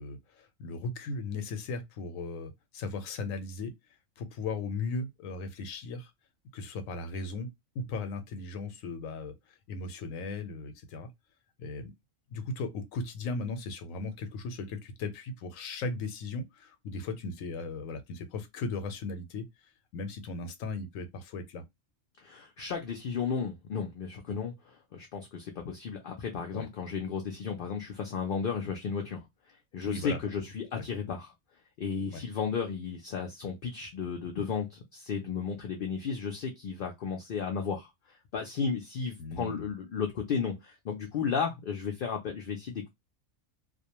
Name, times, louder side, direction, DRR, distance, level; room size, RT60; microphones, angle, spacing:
voice 1, 0.0-3.7 4.2-6.1 6.5-7.5 7.7-9.3 9.7-11.1 11.6-11.9 12.3-19.5 19.9-21.6 26.5-26.7 29.8-30.2 30.7-30.8 32.1-32.2 39.2-39.7, left 3 dB, 85° left, 1.0 m, -37 dB
voice 2, 22.2-29.2 29.7-31.3 31.8-37.9 38.3-42.9, left 6 dB, 60° left, 0.5 m, -34 dB
2.4 x 2.1 x 2.8 m
omnidirectional pair, 1.4 m